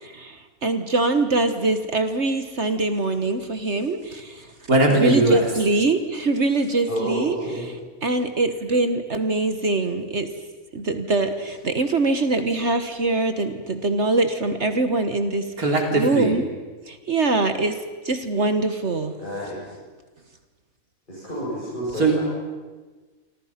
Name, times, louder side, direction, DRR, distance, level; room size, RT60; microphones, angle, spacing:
voice 1, 0.0-4.5 4.9-10.3 10.7-16.5 16.9-19.1, right 2 dB, 50° right, 8 dB, 1.6 m, -23 dB
voice 2, 4.7-5.4 15.6-16.4 22.0-22.2, right 2 dB, 80° right, 1 dB, 3.9 m, -19 dB
voice 3, 6.9-7.6 19.2-19.6 21.1-22.2, equal, 35° left, -8 dB, 8.2 m, -29 dB
28.5 x 24.5 x 5.9 m, 1.3 s
omnidirectional pair, 1.5 m